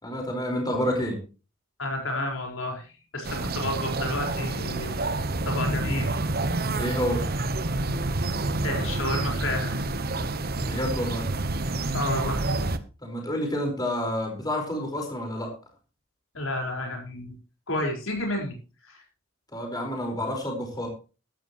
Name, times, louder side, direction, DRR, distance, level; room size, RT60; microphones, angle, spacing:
voice 1, 0.0-1.2 6.7-7.3 10.6-11.3 13.0-15.5 19.5-20.9, equal, 20° left, 2 dB, 4.8 m, -29 dB
voice 2, 1.8-2.9 3.1-5.0 5.4-6.2 8.6-9.8 11.9-12.4 16.3-17.3 17.7-18.5 18.8-19.0, left 1 dB, 75° left, 1 dB, 4.7 m, -30 dB
sound 1, 3.2-12.8, right 2 dB, 50° right, 1.0 m, -28 dB
15.0 x 13.0 x 3.1 m, 0.33 s
head